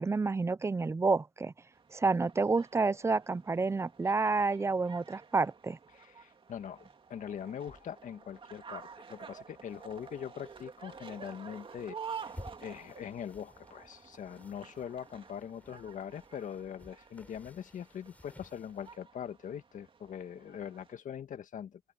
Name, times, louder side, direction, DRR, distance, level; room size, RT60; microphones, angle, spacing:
voice 1, 0.0-1.5 1.9-5.8, right 4 dB, 15° right, 0.8 m, -29 dB
sound 1, 1.7-20.9, right 6 dB, 30° right, 2.2 m, -50 dB
voice 2, 5.9-12.0 12.2-12.3 12.6-21.8, left 8 dB, 50° left, 1.9 m, -42 dB
sound 2, 7.7-19.0, left 1 dB, 10° left, 7.7 m, -56 dB
open air
cardioid pair, 110°, 17 cm